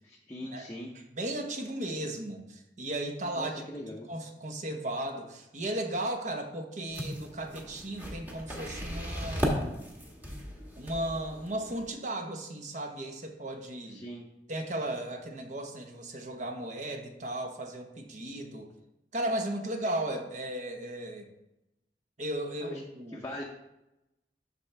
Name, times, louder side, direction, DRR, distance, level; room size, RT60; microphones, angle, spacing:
voice 1, 0.0-0.9 3.4-4.1 13.9-14.3 22.6-22.8 23.1-23.4, left 1 dB, 15° left, -2 dB, 0.7 m, -41 dB
voice 2, 1.1-9.8 10.8-14.0 14.5-18.7 19.1-21.3 22.2-23.2, right 1 dB, 45° right, 4 dB, 1.0 m, -35 dB
sound 1, 6.9-11.9, equal, 10° right, 1.3 m, -36 dB
12.5 x 4.3 x 3.4 m, 0.91 s
head